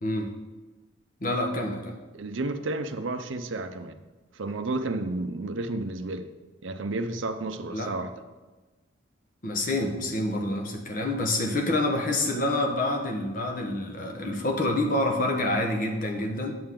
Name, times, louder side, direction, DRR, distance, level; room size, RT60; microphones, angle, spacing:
voice 1, 0.0-0.3 1.2-2.0 7.7-7.9 9.4-16.5, left 1 dB, 40° left, 1.1 m, -27 dB
voice 2, 2.1-4.0 4.3-6.3 6.6-8.1, right 2 dB, 75° right, 0.6 m, -31 dB
8.9 x 7.8 x 3.7 m
head